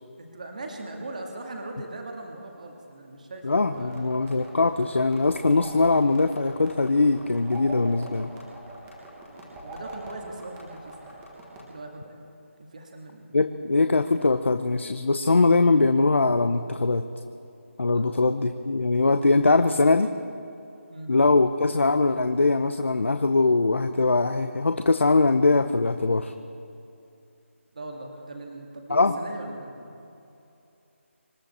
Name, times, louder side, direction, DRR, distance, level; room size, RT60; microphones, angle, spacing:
voice 1, 0.2-4.2 9.6-11.2 11.7-12.3 12.6-13.3 17.9-18.1 20.9-21.1 27.7-30.1, right 2 dB, 35° right, 2 dB, 1.8 m, -40 dB
voice 2, 3.4-8.3 13.3-17.0 17.8-20.1 21.1-26.3 28.9-29.2, left 3 dB, 60° left, 9 dB, 0.7 m, -21 dB
sound 1, 3.7-11.6, right 1 dB, 5° right, 1.4 m, -43 dB
26.0 x 12.0 x 4.3 m, 2.8 s
figure-of-eight pair, 180°, 7 cm